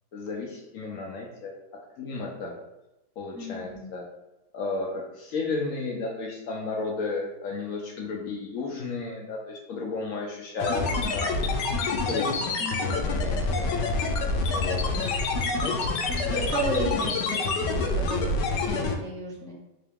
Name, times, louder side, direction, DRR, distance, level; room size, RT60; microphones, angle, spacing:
voice 1, 0.1-2.5 3.2-4.1 4.5-11.3 11.9-12.5 12.8-13.7 14.4-15.0 15.6-15.8, left 3 dB, 65° left, 0 dB, 0.8 m, -33 dB
voice 2, 3.3-3.9 12.6-13.0 16.1-19.5, right 1 dB, 5° left, -6 dB, 0.5 m, -34 dB
sound 1, 10.6-19.0, left 3 dB, 90° left, 1.2 m, -27 dB
3.8 x 2.8 x 3.4 m, 0.94 s
omnidirectional pair, 1.8 m